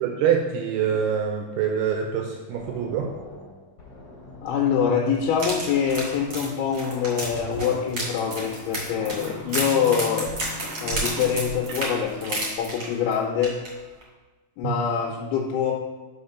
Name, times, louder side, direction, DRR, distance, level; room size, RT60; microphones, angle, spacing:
voice 1, 0.0-3.1 14.6-14.7, right 8 dB, 85° right, 1 dB, 2.3 m, -25 dB
sound 1, 2.5-6.4 6.9-11.6, left 2 dB, 45° left, 1.9 m, -41 dB
voice 2, 4.4-10.3 10.8-13.6 14.6-15.7, left 7 dB, 85° left, -2 dB, 3.2 m, -25 dB
sound 2, 5.3-13.1 13.4-13.7 14.0-14.1, right 1 dB, 35° right, 2.1 m, -31 dB
sound 3, 8.5-8.6 9.0-9.3 9.9-13.0 13.7-13.8, right 5 dB, 60° right, 2.2 m, -38 dB
5.7 x 5.2 x 5.6 m, 1.3 s
omnidirectional pair, 5.3 m